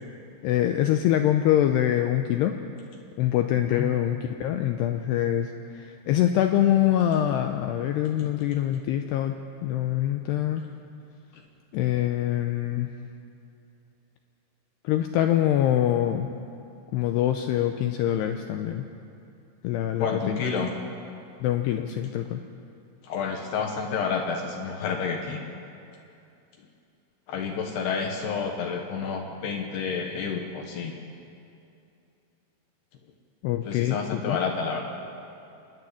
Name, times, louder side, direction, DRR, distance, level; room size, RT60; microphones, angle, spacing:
voice 1, 0.4-2.6 3.2-9.3 9.6-10.6 11.7-12.9 14.8-16.3 16.9-18.8 19.6-20.4 21.4-22.4 33.4-34.4, left 12 dB, 85° left, 6 dB, 2.4 m, -24 dB
voice 2, 20.0-20.8 23.0-25.4 27.3-31.0 33.6-34.8, left 5 dB, 70° left, 3 dB, 2.9 m, -29 dB
25.5 x 11.0 x 9.9 m, 2.7 s
omnidirectional pair, 5.5 m